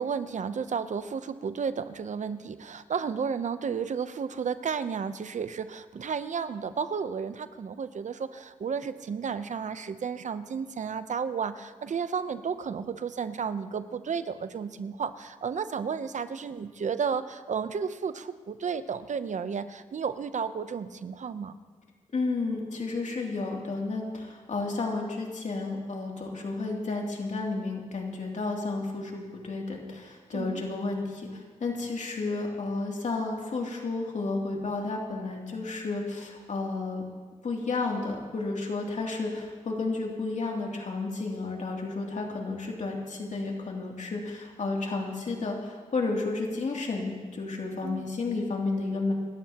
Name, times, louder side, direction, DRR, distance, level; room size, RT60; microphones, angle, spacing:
voice 1, 0.0-21.5 30.3-30.7 47.8-48.1, right 6 dB, 65° right, 12 dB, 0.8 m, -32 dB
voice 2, 22.1-37.0 37.4-49.1, left 3 dB, 60° left, -1 dB, 2.9 m, -32 dB
27.0 x 13.5 x 3.0 m, 1.5 s
cardioid pair, 65°, 14 cm